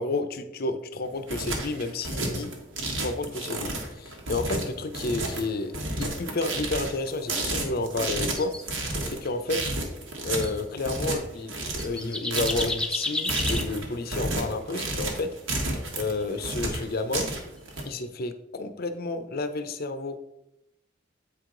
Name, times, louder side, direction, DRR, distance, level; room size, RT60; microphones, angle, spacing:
voice 1, 0.0-2.5 2.9-8.5 9.0-9.6 10.2-15.3 15.9-17.3 17.8-20.2, left 2 dB, 50° left, 9 dB, 0.6 m, -31 dB
sound 1, 1.0-17.8, right 2 dB, 80° right, 1.5 m, -31 dB
sound 2, 8.3-8.6 9.6-9.8 10.4-10.6 11.4-11.5 11.8-13.7 15.9-16.2 17.7-17.9, left 2 dB, 5° left, 0.5 m, -32 dB
8.0 x 4.7 x 3.8 m, 0.85 s
head